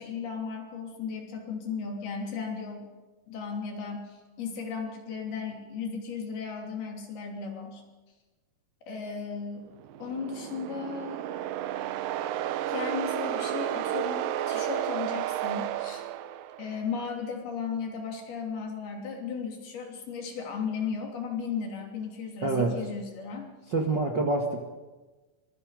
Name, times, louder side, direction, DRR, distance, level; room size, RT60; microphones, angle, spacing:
voice 1, 0.0-2.9 3.3-7.8 8.9-9.7 10.0-11.2 12.7-16.0 16.6-23.5, left 5 dB, 70° left, 2 dB, 5.0 m, -35 dB
sound 1, 9.8-16.8, right 12 dB, 75° right, 2.2 m, -32 dB
voice 2, 22.4-22.7 23.7-24.7, right 3 dB, 40° right, 0 dB, 1.8 m, -26 dB
25.0 x 22.5 x 5.1 m, 1.2 s
omnidirectional pair, 4.7 m